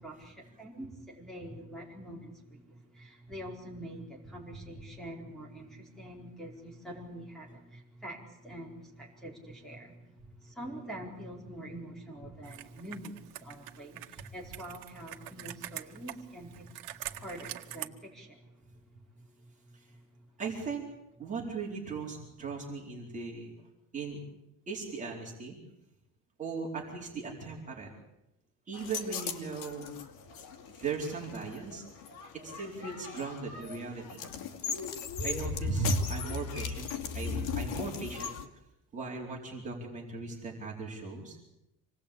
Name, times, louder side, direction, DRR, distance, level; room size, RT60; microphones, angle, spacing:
voice 1, 0.0-10.0 10.4-16.7 17.0-18.4, right 1 dB, ahead, -2 dB, 4.7 m, -45 dB
Computer keyboard, 12.4-17.9, right 14 dB, 85° right, 1.7 m, -44 dB
voice 2, 20.4-20.8 21.2-23.5 23.9-24.2 24.7-25.6 26.4-27.9 28.7-30.0 30.7-31.8 32.4-34.3 35.2-36.9 37.1-38.3 38.9-41.4, right 4 dB, 20° right, -1 dB, 4.2 m, -38 dB
sound 1, 28.7-38.4, left 3 dB, 75° left, 2.7 m, -36 dB
26.5 x 19.5 x 8.7 m, 0.88 s
cardioid pair, 175°, 33 cm